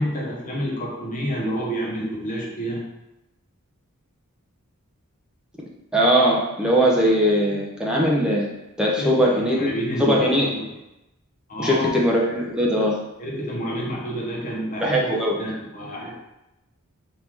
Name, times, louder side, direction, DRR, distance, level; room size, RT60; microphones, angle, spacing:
voice 1, 0.0-2.8 9.0-9.1 9.4-10.7 11.5-11.9 13.2-16.2, equal, 35° left, -3 dB, 1.0 m, -28 dB
voice 2, 5.9-8.5 8.8-9.7 10.0-10.5 11.6-13.0 14.8-15.4, equal, 5° right, -3 dB, 0.6 m, -20 dB
3.6 x 2.7 x 4.6 m, 0.94 s
head